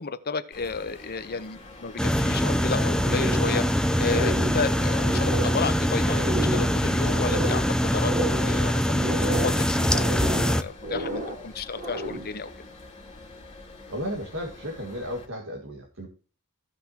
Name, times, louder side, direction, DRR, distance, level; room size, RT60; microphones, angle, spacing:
voice 1, 0.0-3.6 4.0-12.5, left 5 dB, 45° left, 11 dB, 0.9 m, -32 dB
sound 1, 0.5-15.3, left 2 dB, 25° left, 2.4 m, -46 dB
sound 2, 2.0-10.6, equal, 5° left, 0.6 m, -23 dB
sound 3, 3.0-3.8 4.0-5.7 6.0-7.7 8.0-9.6 9.9-11.4 11.8-12.4, right 1 dB, 40° right, 3.5 m, -31 dB
voice 2, 13.9-16.1, equal, 60° right, 1 dB, 1.9 m, -34 dB
16.0 x 5.9 x 2.9 m, 0.37 s
head